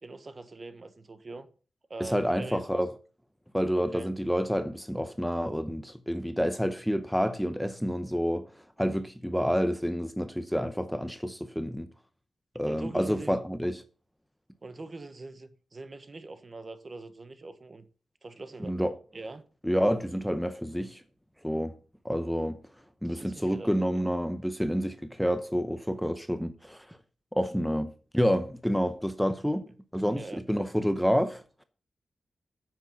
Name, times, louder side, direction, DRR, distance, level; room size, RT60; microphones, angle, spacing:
voice 1, 0.0-1.5 1.9-2.8 3.8-4.1 12.6-13.4 14.6-17.9 18.2-18.8 19.1-19.4 23.0-24.0 30.1-30.4, right 3 dB, 30° right, 1.1 m, -43 dB
voice 2, 2.0-2.9 3.5-8.5 8.8-11.9 12.5-13.8 18.7-18.9 19.6-21.0 21.4-21.7 22.0-22.6 23.0-27.0 27.3-29.6 29.9-31.6, equal, ahead, 0.7 m, -28 dB
9.6 x 7.5 x 6.9 m
wide cardioid pair, 145°, 0 cm